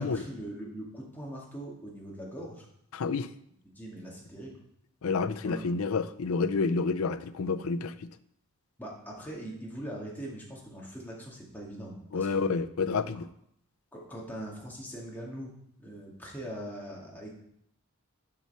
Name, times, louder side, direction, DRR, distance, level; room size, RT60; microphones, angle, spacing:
voice 1, 0.0-2.7 3.6-4.6 5.4-5.8 8.8-12.6 13.9-15.5 15.8-17.3, right 1 dB, 10° left, -4 dB, 2.1 m, -41 dB
voice 2, 2.9-3.3 5.0-8.1 12.1-13.3, left 4 dB, 80° left, 12 dB, 0.5 m, -29 dB
7.5 x 5.7 x 5.6 m, 0.71 s
head